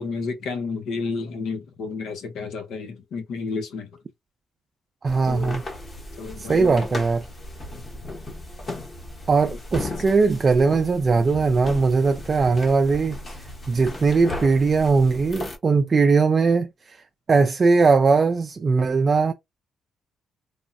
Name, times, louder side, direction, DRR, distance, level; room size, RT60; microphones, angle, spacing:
voice 1, 0.0-3.9 5.2-5.6 6.2-6.8, left 4 dB, 80° left, 0.8 m, -31 dB
voice 2, 5.0-5.6 6.4-7.3 9.3-13.2 13.7-17.0 17.3-19.3, right 4 dB, 40° right, 0.3 m, -20 dB
sound 1, 5.1-15.6, left 2 dB, 35° left, 1.0 m, -36 dB
3.5 x 2.0 x 2.6 m
cardioid pair, 90°, 0 cm